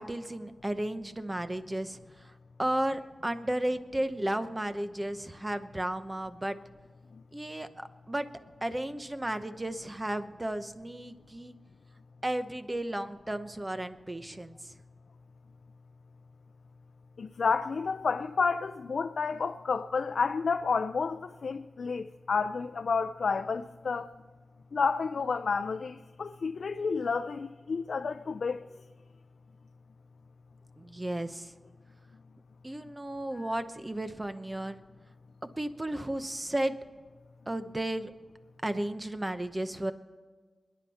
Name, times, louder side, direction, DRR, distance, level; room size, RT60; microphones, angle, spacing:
voice 1, 0.0-2.3 2.6-6.6 7.3-8.3 8.6-11.5 12.2-14.7 30.8-31.5 32.6-34.8 35.4-36.8 37.5-38.1 38.6-39.9, right 1 dB, 20° right, 0.8 m, -34 dB
voice 2, 17.2-24.1 24.7-28.6, left 5 dB, 80° left, 0.4 m, -30 dB
28.5 x 10.5 x 4.2 m
wide cardioid pair, 105°, 0 cm